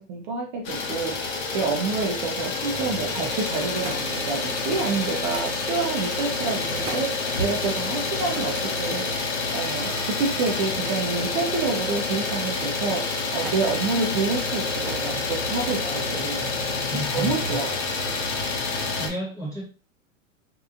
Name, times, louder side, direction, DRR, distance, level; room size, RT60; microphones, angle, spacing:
voice 1, 0.0-16.5 16.9-17.8, right 4 dB, 35° right, 0.6 m, -28 dB
Idling, 0.6-19.1, left 3 dB, 65° left, 0.9 m, -28 dB
Thump thud, 3.8-4.3 5.3-5.6 6.7-7.1 8.3-8.6 10.9-11.2 11.5-12.1 13.4-13.7 14.9-15.1 16.1-16.6 17.5-17.6, right 4 dB, 70° right, 0.9 m, -39 dB
voice 2, 16.9-17.6 19.0-19.6, equal, 10° left, 0.8 m, -32 dB
2.7 x 2.3 x 2.6 m
hypercardioid pair, 135°, 38 cm